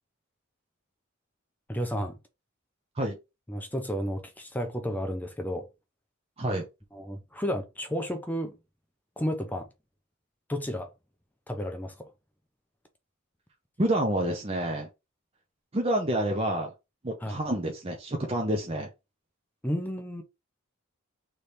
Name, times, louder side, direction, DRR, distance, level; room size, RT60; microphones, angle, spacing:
voice 1, 1.7-2.2 3.5-5.7 6.9-8.5 9.2-9.7 10.5-10.9 11.5-12.1 17.2-17.4 19.6-20.2, equal, 10° left, 0.6 m, -32 dB
voice 2, 13.8-14.9 15.7-16.7 17.0-18.9, right 1 dB, 25° right, 0.7 m, -28 dB
3.4 x 3.3 x 4.1 m
head